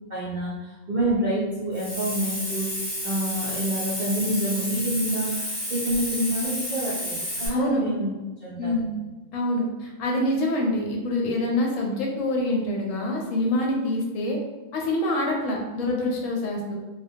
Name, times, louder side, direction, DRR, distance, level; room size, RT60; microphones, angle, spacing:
voice 1, 0.1-2.7 3.0-8.1 8.4-8.9, right 1 dB, 70° right, -7 dB, 0.4 m, -27 dB
Hiss, 1.7-7.5, equal, 10° left, 0.9 m, -31 dB
voice 2, 7.5-7.8 8.6-8.9 9.3-14.4 14.7-16.8, left 1 dB, 75° left, -1 dB, 0.9 m, -25 dB
2.2 x 2.2 x 2.6 m, 1.2 s
omnidirectional pair, 1.4 m